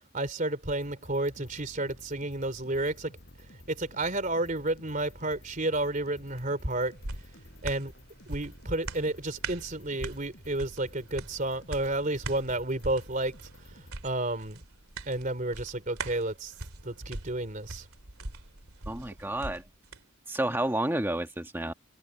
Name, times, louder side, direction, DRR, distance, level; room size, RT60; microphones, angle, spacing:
voice 1, 0.1-3.2 3.7-7.0 7.6-7.9 8.3-13.4 13.7-14.6 15.1-16.5 16.8-17.9, right 2 dB, 35° right, 3.7 m, -31 dB
sound 1, 0.8-13.9, left 1 dB, 50° left, 7.3 m, -52 dB
sound 2, 6.4-20.0 20.4-20.5, right 3 dB, 90° right, 2.8 m, -42 dB
voice 2, 18.9-19.6 20.3-21.7, right 1 dB, 10° right, 1.5 m, -30 dB
head